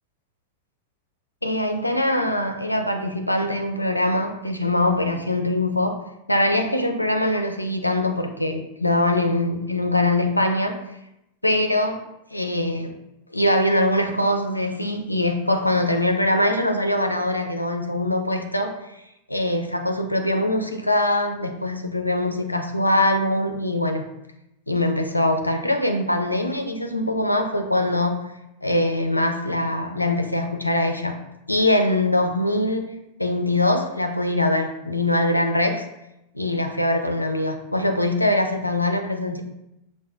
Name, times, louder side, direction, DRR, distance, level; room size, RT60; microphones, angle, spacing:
voice 1, 1.4-6.0 6.3-10.8 11.4-12.0 12.3-12.9 13.3-18.7 19.3-24.0 24.7-28.2 28.6-31.2 31.5-32.9 33.2-35.9 36.3-39.4, left 1 dB, 85° left, 5 dB, 0.4 m, -22 dB
5.6 x 2.1 x 2.3 m, 0.87 s
figure-of-eight pair, 90°, 0 cm